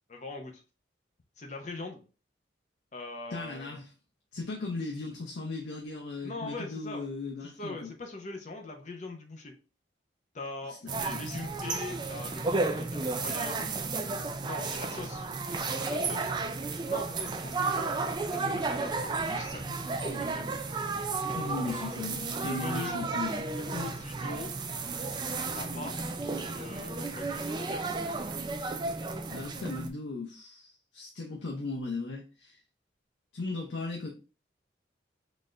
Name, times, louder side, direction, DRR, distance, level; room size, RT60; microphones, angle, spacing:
voice 1, 0.1-0.6 1.4-2.0 2.9-3.8 6.2-7.0 7.4-9.5 10.3-13.7 14.4-15.3 15.5-16.4 16.9-20.7 21.3-22.0 22.4-23.0 23.6-24.5 25.5-26.0 26.3-29.1, left 3 dB, 40° left, 0.7 m, -42 dB
voice 2, 3.3-3.9 4.3-7.9 10.6-11.5 21.3-23.5 29.3-32.6 33.3-34.1, left 3 dB, 80° left, 0.6 m, -37 dB
sound 1, 10.9-29.9, right 3 dB, 25° right, 0.3 m, -33 dB
4.0 x 2.5 x 3.2 m
head